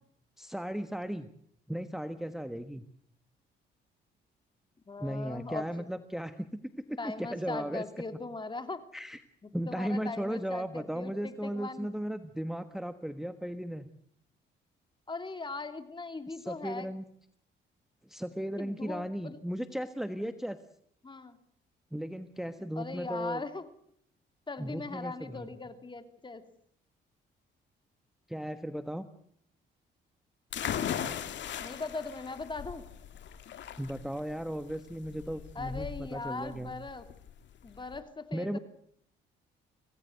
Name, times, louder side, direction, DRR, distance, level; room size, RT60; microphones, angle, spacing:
voice 1, 0.4-1.3 1.7-2.8 5.0-7.8 8.9-9.2 9.5-13.9 16.3-17.0 18.0-20.6 21.9-23.4 24.6-25.5 28.3-29.1 33.8-36.7 38.3-38.6, equal, ahead, 10 dB, 1.3 m, -36 dB
voice 2, 4.9-5.8 7.0-8.8 9.4-12.0 15.1-16.9 18.6-19.4 21.0-21.4 22.7-23.6 24.5-26.4 31.6-32.8 35.5-37.1 37.6-38.6, left 3 dB, 25° left, 9 dB, 3.0 m, -40 dB
sound 1, 30.5-38.0, left 9 dB, 65° left, 2.0 m, -38 dB
25.5 x 17.0 x 8.0 m, 0.68 s
cardioid pair, 90°, 20 cm